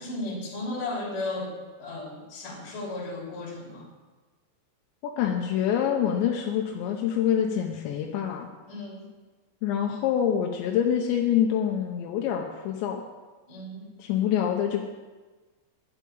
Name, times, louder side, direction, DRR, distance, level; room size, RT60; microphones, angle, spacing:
voice 1, 0.0-1.5 1.8-3.9 8.7-9.1 13.5-13.9, left 2 dB, 50° left, -2 dB, 4.6 m, -35 dB
voice 2, 5.0-8.5 9.6-13.0 14.0-14.9, left 9 dB, 85° left, 2 dB, 3.1 m, -26 dB
11.5 x 8.4 x 8.5 m, 1.3 s
omnidirectional pair, 5.0 m